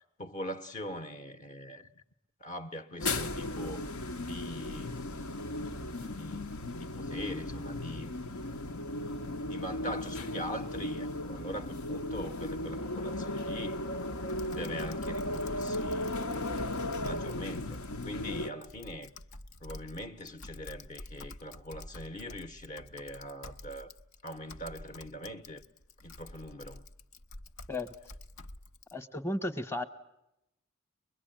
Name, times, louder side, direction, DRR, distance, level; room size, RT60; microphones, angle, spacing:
voice 1, 0.0-2.0 2.4-5.2 6.0-8.1 8.9-13.8 14.4-16.2 17.0-19.1 19.6-23.9 24.2-25.6 26.0-26.8, equal, 35° left, 0.9 m, -42 dB
sound 1, 3.0-18.5, left 1 dB, 85° left, 1.1 m, -36 dB
Typing, 14.3-28.9, left 2 dB, 70° left, 0.9 m, -49 dB
voice 2, 28.9-29.8, left 1 dB, 10° left, 1.0 m, -34 dB
24.0 x 22.0 x 8.8 m
head